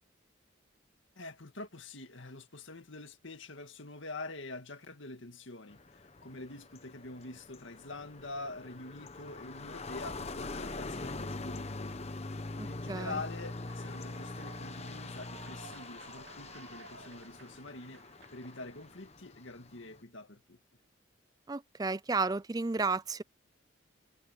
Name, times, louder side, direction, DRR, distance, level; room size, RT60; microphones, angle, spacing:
voice 1, 1.2-12.0 12.6-18.0 18.3-20.6, left 2 dB, 75° left, 2.0 m, -45 dB
sound 1, 5.7-20.0, left 2 dB, 35° left, 1.0 m, -43 dB
voice 2, 12.5-13.2 21.5-23.2, right 4 dB, 20° right, 0.4 m, -33 dB
Human voice / Clapping / Cheering, 13.1-19.1, right 5 dB, 80° right, 2.0 m, -55 dB
head